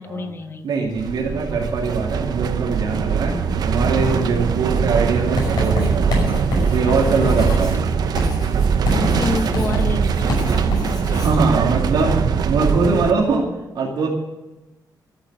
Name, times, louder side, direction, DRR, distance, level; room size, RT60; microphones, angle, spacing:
voice 1, 0.0-0.9 7.5-7.8 8.9-11.4, left 3 dB, 35° left, 8 dB, 1.0 m, -29 dB
voice 2, 0.6-3.4 3.7-6.4 6.7-7.7 11.1-13.5 13.7-14.1, right 4 dB, 85° right, -3 dB, 2.4 m, -22 dB
sound 1, 0.9-13.1, right 6 dB, 60° right, 0.9 m, -21 dB
Writing, 5.4-11.4, left 1 dB, 65° left, 5.9 m, -26 dB
13.5 x 7.4 x 9.3 m, 1.1 s
wide cardioid pair, 165°, 7 cm